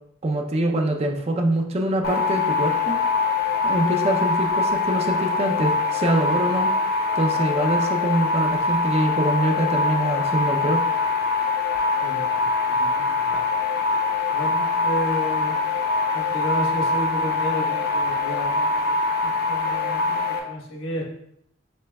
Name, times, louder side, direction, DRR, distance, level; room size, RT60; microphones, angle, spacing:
voice 1, 0.2-3.0 3.6-6.7 7.1-10.8, right 1 dB, 30° right, 3 dB, 0.5 m, -24 dB
sound 1, 2.0-20.4, left 3 dB, 50° left, 0.7 m, -23 dB
voice 2, 12.0-12.5 12.8-13.4 14.3-15.5 16.1-20.2 20.5-21.0, equal, 70° left, -1 dB, 1.2 m, -32 dB
7.4 x 3.2 x 2.2 m, 0.74 s
head